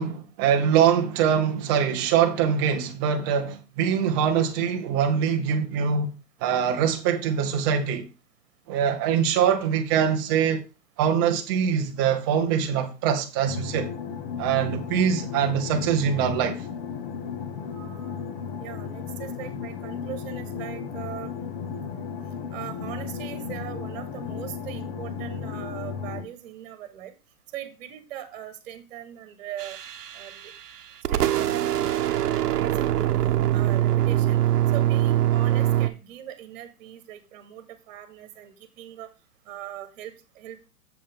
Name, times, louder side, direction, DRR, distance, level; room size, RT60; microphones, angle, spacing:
voice 1, 0.0-6.2 6.4-8.1 8.7-10.6 11.0-13.9 14.4-16.6, right 8 dB, 15° right, 0.6 m, -23 dB
sound 1, 13.5-26.2, left 6 dB, 35° left, 1.0 m, -34 dB
voice 2, 17.7-18.2 18.6-21.3 22.5-27.1 27.5-29.8 30.1-30.5 31.1-33.1 33.5-34.4 34.7-39.1 39.4-40.7, right 11 dB, 40° right, 1.5 m, -40 dB
sound 2, 29.6-30.8 31.0-35.9, right 12 dB, 70° right, 1.0 m, -23 dB
8.3 x 7.1 x 3.6 m
hypercardioid pair, 150°, 48 cm